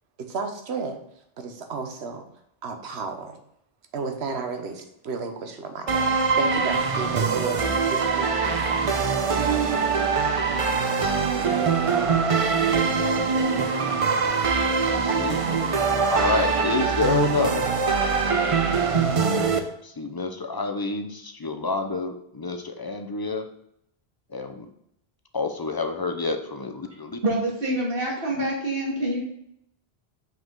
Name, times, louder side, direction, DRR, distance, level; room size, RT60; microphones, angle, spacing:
voice 1, 0.2-1.0 1.4-2.3 2.6-3.4 3.9-5.9 6.4-8.9, right 4 dB, 90° right, 6 dB, 1.1 m, -33 dB
sound 1, 5.9-19.6, right 5 dB, 40° right, 0.5 m, -23 dB
voice 2, 12.7-13.2 14.6-15.4 16.1-17.6 19.8-23.5 24.3-24.7 25.3-27.2, left 4 dB, 30° left, 7 dB, 0.4 m, -28 dB
voice 3, 27.2-29.2, right 1 dB, 60° right, -2 dB, 1.9 m, -26 dB
5.9 x 5.1 x 3.7 m, 0.75 s
omnidirectional pair, 1.1 m